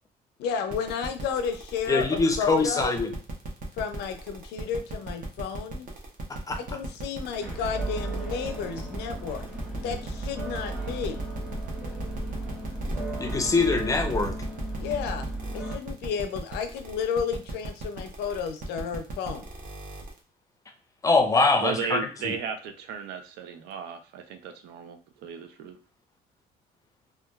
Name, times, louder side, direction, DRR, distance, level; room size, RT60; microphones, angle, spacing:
voice 1, 0.4-3.0 3.8-5.9 6.6-9.4 9.8-11.2 14.8-15.3 15.5-19.5, left 6 dB, 80° left, 8 dB, 0.4 m, -32 dB
sound 1, 0.7-20.2, right 3 dB, 55° right, 0.8 m, -38 dB
voice 2, 1.9-3.1 6.5-6.6 13.2-14.3 21.0-22.4, left 3 dB, 20° left, 6 dB, 0.4 m, -23 dB
sound 2, 7.4-15.8, right 2 dB, 5° right, 0.9 m, -35 dB
voice 3, 21.6-25.8, right 7 dB, 85° right, 7 dB, 0.5 m, -35 dB
2.8 x 2.2 x 2.3 m, 0.38 s
cardioid pair, 110°, 17 cm